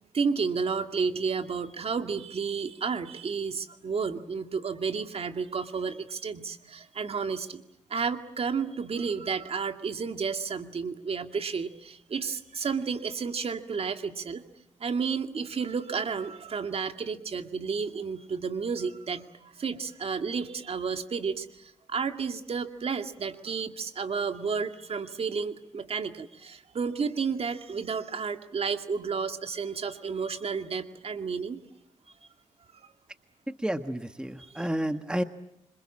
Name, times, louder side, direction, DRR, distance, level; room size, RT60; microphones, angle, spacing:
voice 1, 0.1-7.6 7.9-14.4 14.8-31.6 34.4-34.7, right 5 dB, 55° right, 8 dB, 2.2 m, -31 dB
voice 2, 33.5-35.2, right 1 dB, 5° right, 9 dB, 1.4 m, -30 dB
27.0 x 26.0 x 7.5 m, 0.81 s
cardioid pair, 85°, 12 cm